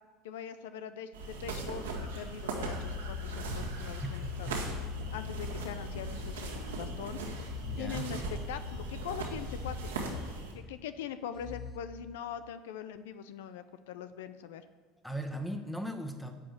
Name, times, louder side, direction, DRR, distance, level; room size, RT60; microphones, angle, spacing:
voice 1, 0.2-4.7 5.1-7.2 7.8-8.2 8.5-10.0 10.5-14.7, left 9 dB, 75° left, 11 dB, 0.5 m, -42 dB
sound 1, 1.1-10.5, equal, 85° right, 1.8 m, -38 dB
voice 2, 4.0-4.6 7.6-8.1 15.0-16.3, equal, 5° left, 5 dB, 1.3 m, -38 dB
sound 2, 7.4-8.7 9.4-10.7 11.4-12.5, left 5 dB, 35° left, 0.8 m, -47 dB
10.0 x 5.0 x 8.0 m, 1.3 s
hypercardioid pair, 75°, 0 cm